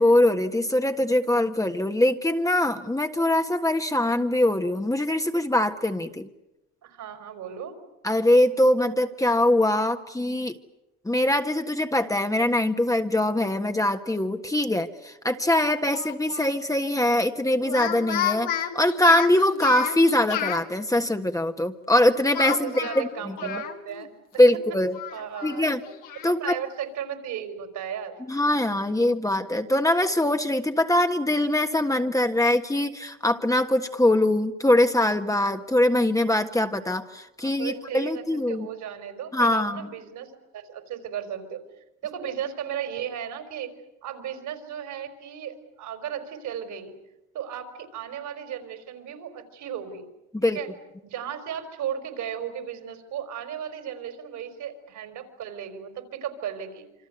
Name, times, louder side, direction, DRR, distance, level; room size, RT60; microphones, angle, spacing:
voice 1, 0.0-6.3 8.0-10.6 11.0-22.8 23.3-23.6 24.4-24.9 25.4-25.8 26.2-26.6 28.3-38.7 39.3-39.8 50.3-50.6, left 1 dB, 10° left, 6 dB, 1.6 m, -22 dB
voice 2, 6.8-7.8 22.4-24.1 25.1-25.7 26.4-28.2 37.4-41.6 42.0-43.7 44.0-47.0 47.3-50.1 50.5-50.7 51.0-56.9, right 9 dB, 65° right, 8 dB, 4.8 m, -35 dB
Speech, 15.9-16.5 17.6-20.6 22.3-24.1 24.4-24.5 24.9-26.3, left 9 dB, 75° left, 2.7 m, -32 dB
27.5 x 25.0 x 8.2 m, 0.92 s
supercardioid pair, 85°, 32 cm